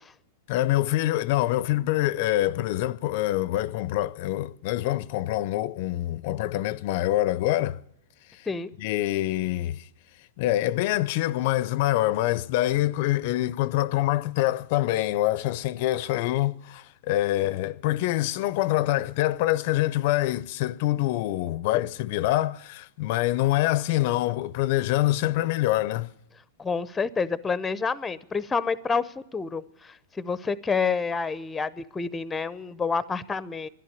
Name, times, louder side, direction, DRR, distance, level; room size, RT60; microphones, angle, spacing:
voice 1, 0.5-7.8 8.3-8.5 8.8-9.9 10.4-26.1, left 15 dB, 55° left, 0.5 m, -25 dB
voice 2, 26.6-29.6 30.2-33.7, left 5 dB, 15° left, 0.6 m, -28 dB
11.5 x 11.0 x 9.7 m
hypercardioid pair, 120°, 0 cm